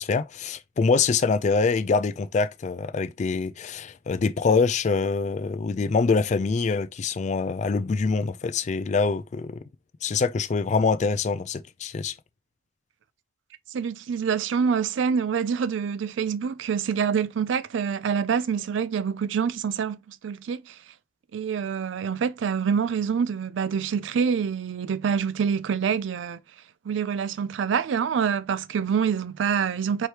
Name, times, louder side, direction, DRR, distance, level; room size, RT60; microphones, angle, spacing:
voice 1, 0.0-9.6 10.0-12.1, left 4 dB, 35° left, 0.3 m, -24 dB
voice 2, 13.7-20.8 21.3-26.4 26.8-30.1, right 6 dB, 70° right, 0.4 m, -26 dB
4.7 x 3.1 x 2.9 m
head